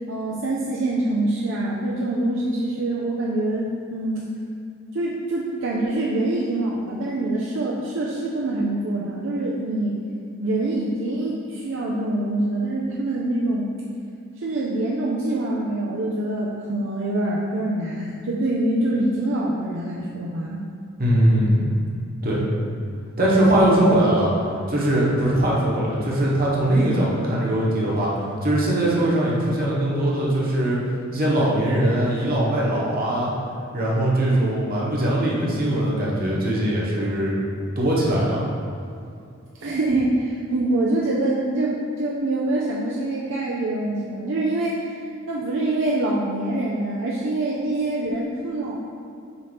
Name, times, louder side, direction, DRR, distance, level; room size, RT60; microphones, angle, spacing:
voice 1, 0.1-4.3 4.9-9.9 10.4-13.7 14.4-20.6 23.5-23.8 39.6-45.0 45.3-48.8, right 2 dB, 65° right, -4 dB, 0.6 m, -25 dB
voice 2, 21.0-21.7 22.2-22.4 23.2-24.3 24.7-28.1 28.4-30.8 31.1-33.3 33.7-37.3 37.7-38.5, right 1 dB, 45° right, -5 dB, 1.3 m, -21 dB
6.9 x 2.8 x 5.2 m, 2.5 s
head